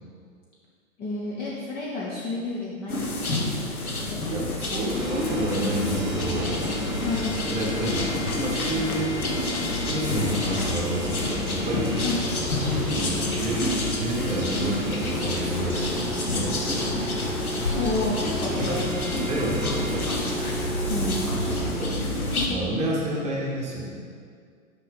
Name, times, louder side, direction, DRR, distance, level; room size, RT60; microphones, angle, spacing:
voice 1, 1.0-3.5 7.0-7.3 12.0-12.2 17.7-19.3 20.9-21.2, left 3 dB, 25° left, -5 dB, 0.8 m, -30 dB
sound 1, 2.9-22.5, left 2 dB, 85° left, 1.0 m, -29 dB
voice 2, 4.3-6.9 7.5-9.3 9.9-12.0 12.6-17.1 18.4-18.8 19.3-20.1 21.4-24.0, right 1 dB, 15° right, -4 dB, 1.3 m, -30 dB
sound 2, 4.9-21.7, equal, ahead, 1.5 m, -32 dB
6.3 x 5.4 x 4.2 m, 2.1 s
figure-of-eight pair, 110°, 42 cm